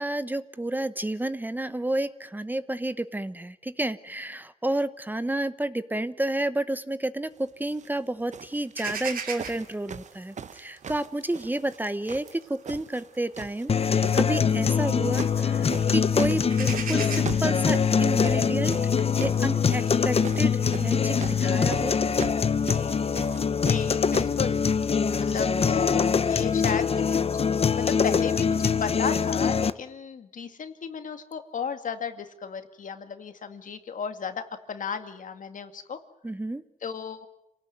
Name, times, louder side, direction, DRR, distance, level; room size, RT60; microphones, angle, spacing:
voice 1, 0.0-21.9 36.2-36.6, right 1 dB, 10° right, 13 dB, 0.9 m, -30 dB
sound 1, 7.7-7.9 8.3-11.8 12.1-13.1 13.3-14.2 14.8-15.5 15.7-24.4 25.2-25.3, right 6 dB, 55° right, 0.9 m, -40 dB
sound 2, 8.8-15.0 15.3-15.9 16.1-20.1, right 6 dB, 80° right, 2.8 m, -40 dB
sound 3, 13.7-29.7, left 6 dB, 45° left, 0.9 m, -23 dB
voice 2, 23.5-24.7 25.2-27.3 27.7-36.0 36.8-37.3, left 6 dB, 65° left, 8 dB, 2.2 m, -34 dB
27.5 x 18.0 x 9.3 m, 0.86 s
cardioid pair, 95°, 15 cm